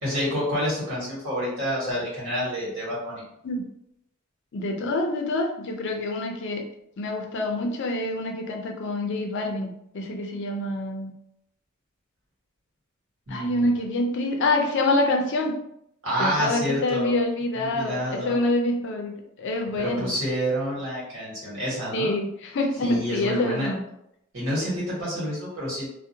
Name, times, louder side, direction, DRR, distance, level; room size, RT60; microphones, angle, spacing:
voice 1, 0.0-3.2 13.3-13.7 16.0-17.1 17.5-18.4 19.7-22.1 22.8-23.7 24.3-25.9, equal, 60° right, -7 dB, 1.4 m, -28 dB
voice 2, 4.5-6.6 7.0-11.1 13.3-15.6 16.2-20.1 21.9-23.8, left 2 dB, 55° left, 2 dB, 0.4 m, -26 dB
2.5 x 2.0 x 2.7 m, 0.78 s
head